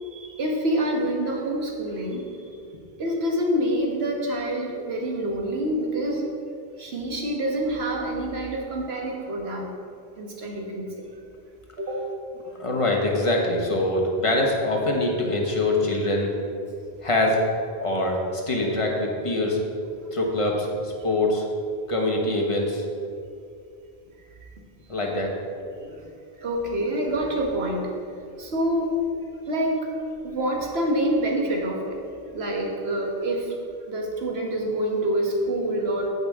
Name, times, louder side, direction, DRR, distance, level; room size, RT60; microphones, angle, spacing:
voice 1, 0.0-2.4 3.0-6.3 6.8-9.7 10.2-11.0 11.8-12.0 24.4-24.5 26.4-28.0 28.4-29.0 29.5-29.9 30.2-32.0 32.3-33.6 33.9-36.1, right 1 dB, 80° right, 0 dB, 1.5 m, -26 dB
voice 2, 12.6-16.3 17.0-17.4 17.8-19.6 20.1-21.5 21.9-22.8 24.9-25.3 25.8-26.0, left 2 dB, 30° left, 0 dB, 1.2 m, -24 dB
14.0 x 5.3 x 3.6 m, 2.4 s
omnidirectional pair, 1.0 m